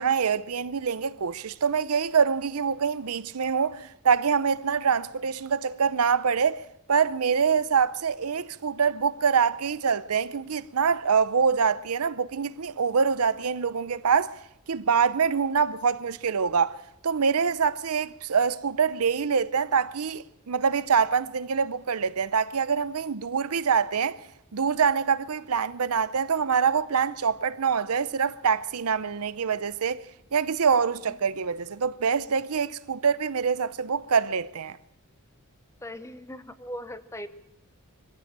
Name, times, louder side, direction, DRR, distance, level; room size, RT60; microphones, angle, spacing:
voice 1, 0.0-6.6 6.9-14.3 14.7-24.2 24.5-30.0 30.3-34.8, right 6 dB, 85° right, 0.7 m, -25 dB
voice 2, 35.8-37.3, equal, 15° left, 0.9 m, -39 dB
23.0 x 15.5 x 7.4 m
head